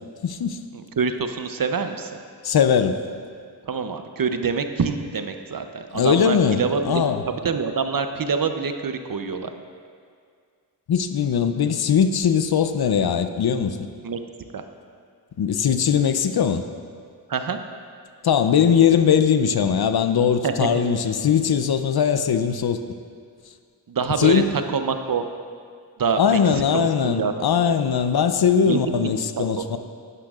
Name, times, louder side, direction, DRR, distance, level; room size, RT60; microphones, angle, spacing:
voice 1, 0.2-0.6 2.4-3.0 5.9-7.2 10.9-13.9 15.4-16.6 18.2-22.8 24.2-24.5 26.2-29.8, left 7 dB, 60° left, 9 dB, 0.6 m, -20 dB
voice 2, 0.7-2.1 3.7-9.5 14.0-14.2 14.5-14.6 17.3-17.6 20.4-21.0 23.9-25.2 26.0-27.3 28.7-29.6, right 5 dB, 50° right, 7 dB, 0.7 m, -26 dB
11.5 x 9.9 x 2.4 m, 2.2 s
cardioid pair, 45°, 44 cm